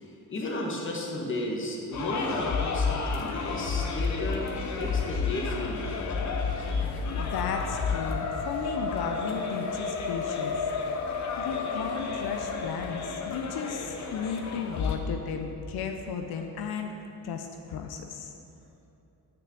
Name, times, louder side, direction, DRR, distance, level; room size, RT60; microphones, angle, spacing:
voice 1, 0.0-6.4 6.6-6.9, left 1 dB, 35° left, -1 dB, 1.3 m, -34 dB
sound 1, 1.9-15.0, left 5 dB, 50° left, 0.9 m, -31 dB
voice 2, 6.9-10.6 11.4-16.9 17.2-18.3, left 6 dB, 85° left, 4 dB, 0.7 m, -35 dB
6.7 x 6.1 x 7.5 m, 2.8 s
cardioid pair, 150°, 37 cm